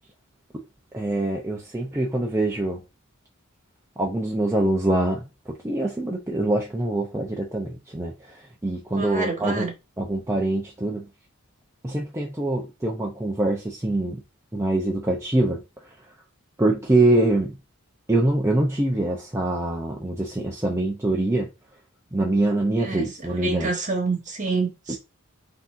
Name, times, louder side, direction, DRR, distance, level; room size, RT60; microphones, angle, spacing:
voice 1, 0.9-2.8 4.0-5.3 5.6-9.7 10.0-11.0 11.8-14.2 14.5-15.6 16.6-17.6 18.1-21.5 22.1-23.8 24.9-25.0, right 2 dB, 15° right, 0.6 m, -24 dB
voice 2, 9.0-9.7 22.8-23.0 23.4-25.0, right 4 dB, 35° right, 1.3 m, -27 dB
5.8 x 2.9 x 2.5 m
head